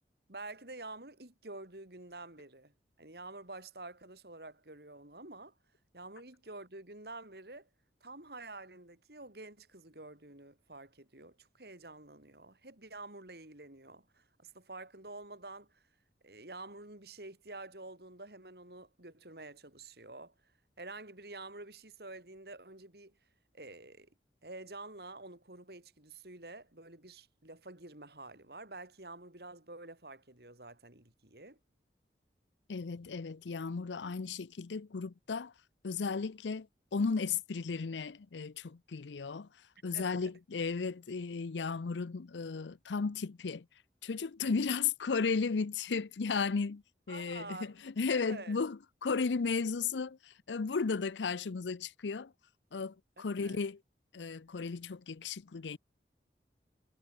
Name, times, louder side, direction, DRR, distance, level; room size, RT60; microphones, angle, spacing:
voice 1, 0.3-2.7 3.0-5.5 5.9-7.7 8.0-15.9 16.2-20.5 20.8-23.2 23.5-24.1 24.4-31.6 39.9-40.3 47.1-47.7 48.1-48.6 53.2-53.6, right 2 dB, 60° right, 3.8 m, -48 dB
voice 2, 32.7-35.5 35.8-36.7 36.9-39.5 39.8-43.7 44.0-46.8 47.1-52.3 52.7-53.8 54.1-55.8, left 5 dB, 90° left, 0.6 m, -34 dB
head